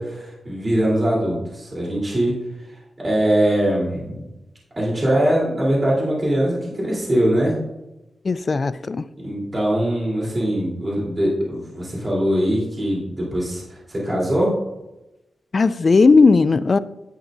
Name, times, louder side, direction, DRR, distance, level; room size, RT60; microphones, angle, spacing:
voice 1, 0.0-2.3 2.6-4.2 4.8-7.6 9.2-14.5, right 1 dB, 30° right, 3.5 m, -22 dB
voice 2, 8.2-9.1 15.5-16.8, left 4 dB, 45° left, 0.4 m, -16 dB
11.0 x 8.4 x 2.6 m
wide cardioid pair, 100°, 0 cm